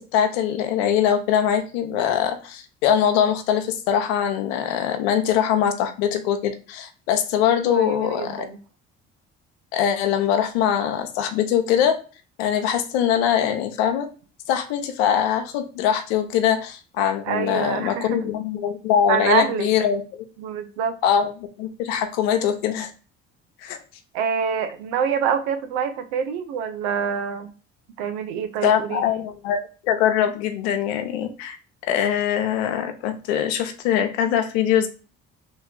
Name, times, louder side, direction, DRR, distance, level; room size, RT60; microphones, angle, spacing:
voice 1, 0.0-8.5 9.7-12.0 12.4-14.1 14.5-20.2 21.0-22.9 23.6-23.8 28.6-29.6 29.8-31.6 31.8-34.9, left 9 dB, 90° left, 7 dB, 0.6 m, -22 dB
voice 2, 7.7-8.6 17.3-18.3 19.1-19.7 20.4-21.0 24.1-27.5 28.0-29.1, right 7 dB, 85° right, 10 dB, 0.6 m, -26 dB
3.3 x 3.0 x 3.6 m, 0.36 s
supercardioid pair, 65°, 30 cm